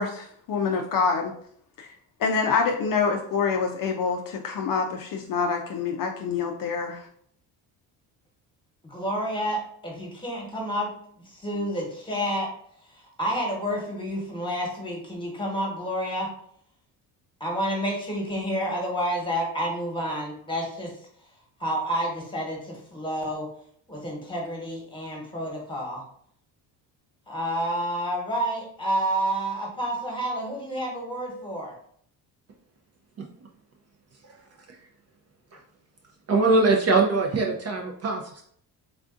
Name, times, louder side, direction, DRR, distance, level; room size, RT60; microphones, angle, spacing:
voice 1, 0.0-1.3 1.8-1.9 2.2-7.1, left 5 dB, 50° left, 3 dB, 0.4 m, -26 dB
voice 2, 8.8-10.9 11.4-12.5 13.2-16.3 17.4-20.9 21.6-23.5 23.9-26.0 27.3-31.7, equal, 10° left, -1 dB, 1.1 m, -29 dB
voice 3, 36.3-38.4, right 3 dB, 35° right, 2 dB, 0.5 m, -22 dB
3.5 x 2.5 x 2.4 m, 0.64 s
cardioid pair, 85°, 43 cm